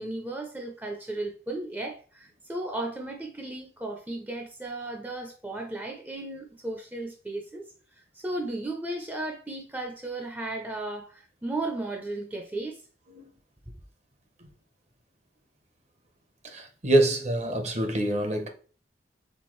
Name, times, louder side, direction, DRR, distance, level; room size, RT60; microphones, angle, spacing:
voice 1, 0.0-7.6 8.0-12.8, right 2 dB, 10° right, 0.5 m, -35 dB
voice 2, 16.4-18.5, right 1 dB, 40° right, 0.8 m, -25 dB
4.4 x 3.8 x 3.1 m
head